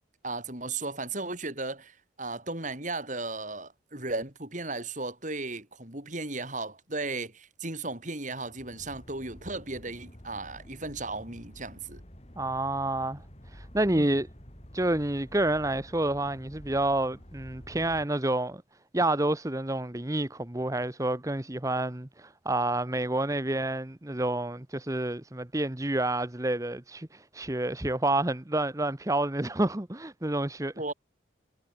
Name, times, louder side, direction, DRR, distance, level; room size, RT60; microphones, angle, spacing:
voice 1, 0.2-12.0 13.9-14.2 30.8-30.9, right 3 dB, 40° right, 4.6 m, -36 dB
sound 1, 8.5-18.1, equal, 35° left, 5.2 m, -49 dB
voice 2, 12.4-13.2 13.5-14.3 14.7-18.6 18.9-30.7, right 1 dB, 15° right, 1.0 m, -29 dB
head